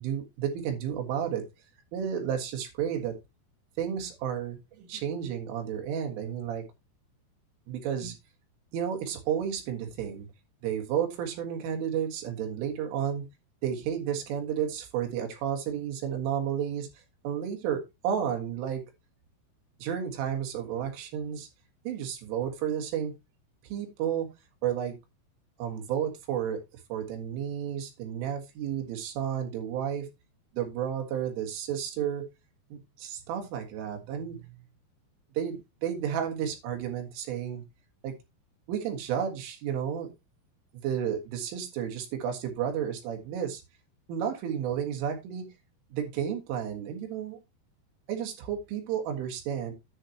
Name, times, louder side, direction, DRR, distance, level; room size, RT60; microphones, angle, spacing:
voice 1, 0.0-1.4 1.9-3.2 3.8-6.6 7.7-8.1 8.7-10.3 10.6-13.2 13.6-16.9 17.2-18.8 19.8-21.5 21.9-23.1 23.7-24.3 24.6-25.0 25.6-26.6 26.9-30.1 30.5-32.2 32.7-34.6 35.4-37.6 38.0-38.1 38.7-40.1 40.8-43.6 44.1-45.5 45.9-47.4 48.1-49.7, right 9 dB, 85° right, 4.2 m, -32 dB
10.0 x 7.6 x 2.9 m
omnidirectional pair, 5.5 m